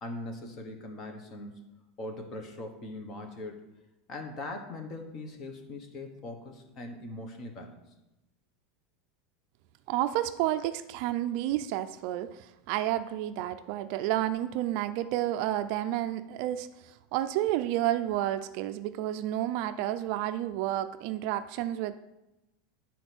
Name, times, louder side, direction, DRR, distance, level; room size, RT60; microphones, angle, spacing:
voice 1, 0.0-1.7 2.0-3.7 4.1-7.8, left 2 dB, 30° left, 4 dB, 1.2 m, -41 dB
voice 2, 9.9-22.0, right 13 dB, 45° right, 10 dB, 0.4 m, -30 dB
10.0 x 4.2 x 6.1 m, 0.97 s
supercardioid pair, 170°, 0 cm